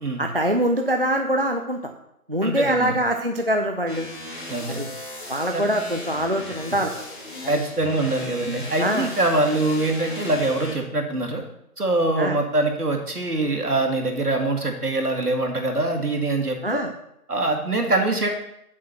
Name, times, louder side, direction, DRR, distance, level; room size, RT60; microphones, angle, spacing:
voice 1, 0.2-1.9 2.3-4.1 4.7-4.9 5.3-6.9 7.4-7.5 8.8-9.1 12.2-12.4 16.6-16.9, right 1 dB, 40° right, 4 dB, 0.5 m, -24 dB
voice 2, 2.4-3.0 4.5-4.8 5.5-5.7 7.5-11.4 11.8-16.8 17.3-18.3, right 2 dB, 75° right, 3 dB, 2.1 m, -24 dB
sound 1, 3.9-10.7, left 1 dB, 35° left, 2.5 m, -37 dB
7.5 x 6.4 x 5.8 m, 0.79 s
figure-of-eight pair, 165°, 45 cm